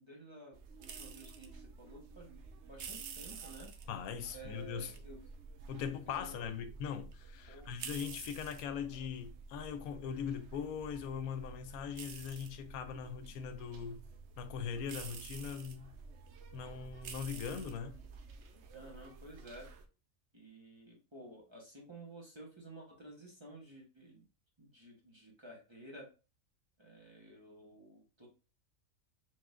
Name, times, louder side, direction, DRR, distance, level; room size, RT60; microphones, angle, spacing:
voice 1, 0.0-2.4 2.6-3.7 4.3-5.2 6.1-6.4 7.5-7.7 18.7-19.7 20.3-24.2 24.6-26.1 26.8-28.3, right 1 dB, 20° right, 1.0 m, -53 dB
sound 1, 0.5-19.8, right 5 dB, 60° right, 0.8 m, -50 dB
voice 2, 3.9-4.9 5.7-14.0 14.4-15.9 16.5-18.0, left 7 dB, 90° left, 1.1 m, -41 dB
4.8 x 3.6 x 2.4 m
omnidirectional pair, 1.5 m